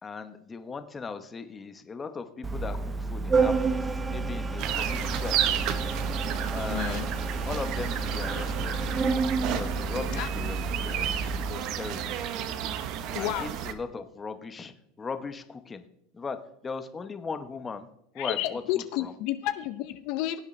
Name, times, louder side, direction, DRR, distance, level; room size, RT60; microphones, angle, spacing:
voice 1, 0.0-5.7 6.5-8.8 9.5-11.1 11.3-12.2 13.2-15.8 16.1-17.9 18.1-19.1, left 5 dB, 20° left, 9 dB, 0.9 m, -38 dB
Organ, 2.4-11.5, right 4 dB, 20° right, 0.7 m, -30 dB
sound 1, 4.6-13.7, right 10 dB, 55° right, 1.0 m, -32 dB
voice 2, 6.7-7.1 10.2-10.3 13.1-13.5 18.2-20.4, left 14 dB, 60° left, 10 dB, 0.6 m, -31 dB
17.0 x 8.1 x 3.2 m, 0.75 s
supercardioid pair, 115°, 0 cm